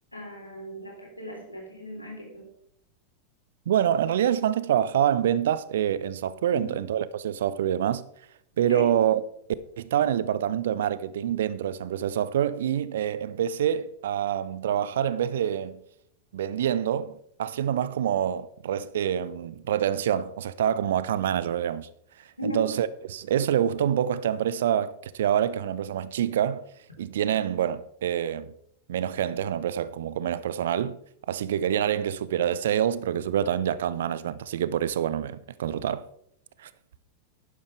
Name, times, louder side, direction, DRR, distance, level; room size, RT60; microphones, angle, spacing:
voice 1, 0.1-2.5 6.5-6.8 8.6-8.9 22.4-22.6, equal, 85° left, 3.6 m, -37 dB
voice 2, 3.7-8.0 8.6-9.2 9.8-15.8 16.3-21.9 22.4-26.6 27.0-28.5 28.9-31.0 31.3-36.0 36.6-36.7, right 10 dB, 60° right, 0.6 m, -26 dB
11.0 x 10.5 x 3.4 m
figure-of-eight pair, 90°, 0 cm